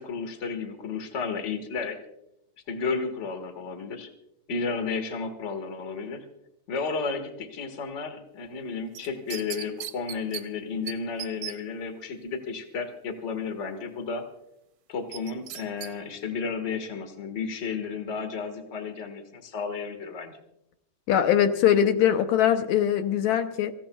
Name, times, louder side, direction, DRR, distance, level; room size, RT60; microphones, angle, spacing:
voice 1, 0.0-2.0 2.7-4.1 4.5-6.3 6.7-14.2 14.9-20.4, left 5 dB, 35° left, 7 dB, 1.1 m, -32 dB
sound 1, 8.9-10.4 10.9-11.0 11.2-11.5 15.1-15.9 16.3-16.4, right 12 dB, 85° right, 2.2 m, -36 dB
voice 2, 21.1-23.7, left 10 dB, 75° left, 8 dB, 2.0 m, -22 dB
26.5 x 15.5 x 2.3 m, 0.83 s
omnidirectional pair, 3.5 m